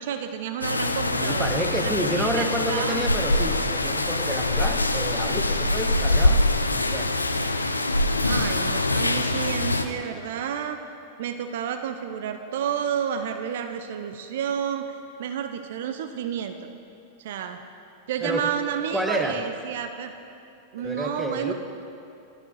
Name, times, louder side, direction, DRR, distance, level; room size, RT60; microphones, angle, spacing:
voice 1, 0.0-1.5 1.8-3.0 3.4-3.5 4.3-4.4 8.2-10.8 11.2-16.6 17.2-17.6 18.1-20.1 20.7-21.5, right 8 dB, 55° right, 8 dB, 0.6 m, -30 dB
sound 1, 0.6-9.8, left 2 dB, 80° left, 0.5 m, -24 dB
voice 2, 1.2-6.5 6.7-7.1 18.2-18.5 18.9-19.4 20.8-21.5, equal, ahead, 4 dB, 0.9 m, -30 dB
15.5 x 12.0 x 3.2 m, 2.6 s
figure-of-eight pair, 90°, 0 cm